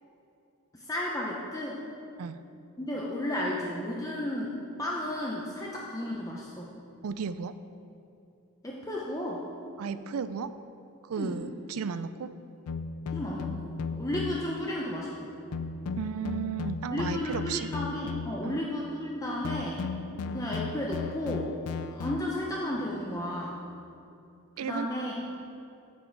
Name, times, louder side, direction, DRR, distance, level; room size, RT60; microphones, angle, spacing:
voice 1, 0.7-1.8 2.8-6.7 8.6-9.5 11.2-11.4 13.1-15.3 16.9-19.8 20.3-21.5 21.9-23.7 24.6-25.1, left 1 dB, 15° left, -3 dB, 0.7 m, -33 dB
voice 2, 7.0-7.5 9.8-10.5 11.0-12.3 16.0-17.7 18.4-18.6 24.6-24.9, right 6 dB, 70° right, 13 dB, 0.4 m, -34 dB
sound 1, 12.7-14.6 15.5-18.6 19.4-22.6, left 4 dB, 80° left, 0.4 m, -36 dB
9.0 x 7.4 x 4.6 m, 2.7 s
head